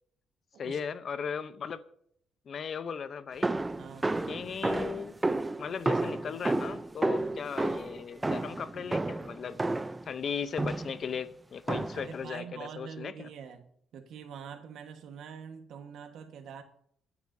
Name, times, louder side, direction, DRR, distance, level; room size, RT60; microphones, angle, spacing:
voice 1, 0.6-1.8 2.5-3.5 4.3-5.1 5.6-9.6 10.1-13.3, left 6 dB, 50° left, 0.8 m, -37 dB
sound 1, 3.4-10.1 10.6-11.0 11.7-12.2, right 2 dB, 15° right, 0.5 m, -31 dB
voice 2, 3.8-4.1 7.1-7.4 11.9-16.6, right 7 dB, 75° right, 1.4 m, -45 dB
26.5 x 9.7 x 2.7 m
cardioid pair, 90°, 0 cm